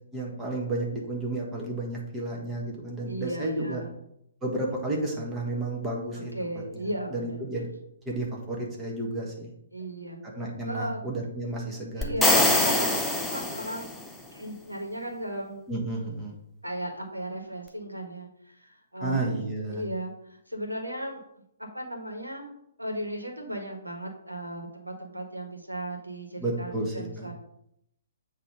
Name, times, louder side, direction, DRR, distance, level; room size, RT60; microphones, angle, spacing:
voice 1, 0.1-3.8 4.4-6.8 7.1-7.7 8.0-9.5 10.3-12.2 12.5-12.6 15.7-16.3 19.0-19.8 26.4-27.3, right 2 dB, 15° right, -2 dB, 1.6 m, -32 dB
voice 2, 3.1-3.9 6.1-7.6 9.7-10.2 10.7-11.0 11.9-13.9 14.3-15.6 16.6-19.4 19.7-21.2 21.6-22.5 22.8-27.3, right 1 dB, 85° right, 3 dB, 1.4 m, -36 dB
sound 1, 12.0-14.1, left 2 dB, 5° left, 0.7 m, -24 dB
7.9 x 3.2 x 5.2 m, 0.76 s
figure-of-eight pair, 125°, 0 cm